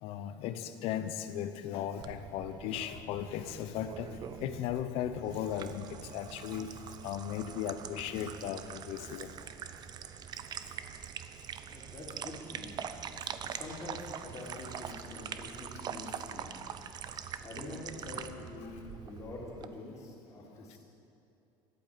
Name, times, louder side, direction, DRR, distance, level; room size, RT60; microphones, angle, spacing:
voice 1, 0.0-4.1 4.4-6.7 7.0-9.3 18.6-18.7, left 10 dB, 65° left, 10 dB, 0.8 m, -36 dB
sound 1, 2.0-19.7, right 8 dB, 40° right, 0.6 m, -44 dB
voice 2, 11.7-12.8 13.4-16.5 17.4-20.8, left 2 dB, 30° left, -4 dB, 3.5 m, -45 dB
12.0 x 8.5 x 7.6 m, 2.8 s
supercardioid pair, 115°, 11 cm